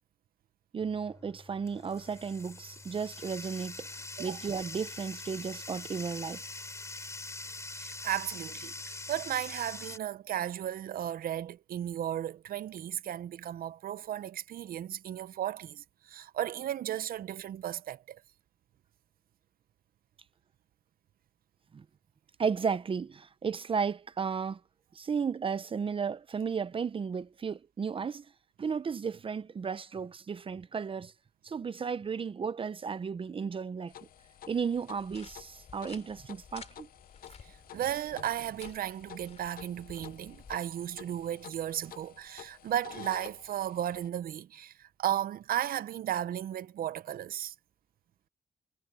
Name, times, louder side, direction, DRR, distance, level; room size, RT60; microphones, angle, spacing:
voice 1, 0.7-6.4 21.7-21.8 22.4-24.6 24.9-28.3 28.6-31.1 31.4-33.9 34.5-36.9, right 6 dB, 35° right, 0.6 m, -34 dB
Bathtub (filling or washing), 0.8-10.0, left 2 dB, 20° left, 2.9 m, -43 dB
voice 2, 7.8-18.2 37.4-47.5, right 11 dB, 80° right, 0.6 m, -35 dB
sound 1, 33.9-44.1, left 10 dB, 85° left, 0.7 m, -51 dB
sound 2, 35.0-40.6, left 6 dB, 50° left, 3.1 m, -53 dB
wide cardioid pair, 125°, 15 cm